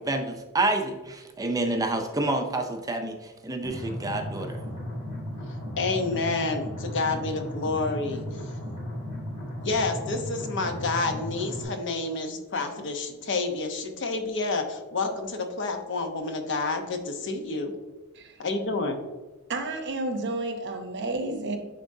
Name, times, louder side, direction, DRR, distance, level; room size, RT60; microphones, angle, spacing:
voice 1, 0.0-3.2 3.4-4.5, right 2 dB, 15° right, 0.5 m, -28 dB
sound 1, 3.6-11.6, left 1 dB, 30° left, 2.0 m, -35 dB
voice 2, 5.8-8.2 9.6-17.7 18.4-19.0, left 3 dB, 55° left, 0.9 m, -29 dB
voice 3, 19.5-21.6, right 2 dB, 50° right, 0.8 m, -31 dB
10.0 x 3.6 x 2.7 m
head